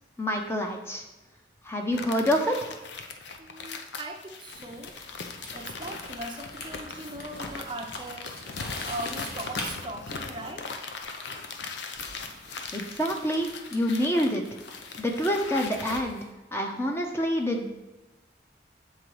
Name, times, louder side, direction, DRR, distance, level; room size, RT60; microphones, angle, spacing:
voice 1, 0.2-1.0 1.7-2.7 12.7-14.4 15.0-16.2 16.5-17.7, equal, 15° left, 2 dB, 0.7 m, -27 dB
sound 1, 1.9-16.0, left 4 dB, 80° left, 0.7 m, -39 dB
voice 2, 3.4-4.9 5.5-10.8, right 1 dB, 25° right, 3 dB, 0.6 m, -39 dB
sound 2, 4.5-9.7 10.9-11.2 11.9-16.3, left 2 dB, 60° left, 1.2 m, -44 dB
7.5 x 3.9 x 4.7 m, 1.1 s
head